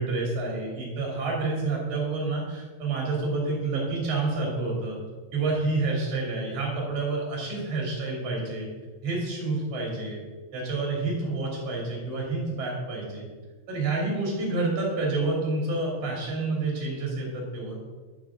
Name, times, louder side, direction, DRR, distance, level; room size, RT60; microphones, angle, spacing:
voice 1, 0.0-5.0 5.3-8.7 9.0-10.2 10.5-13.3 13.7-17.8, right 3 dB, 45° right, -2 dB, 4.0 m, -28 dB
11.5 x 5.9 x 6.5 m, 1.4 s
omnidirectional pair, 5.5 m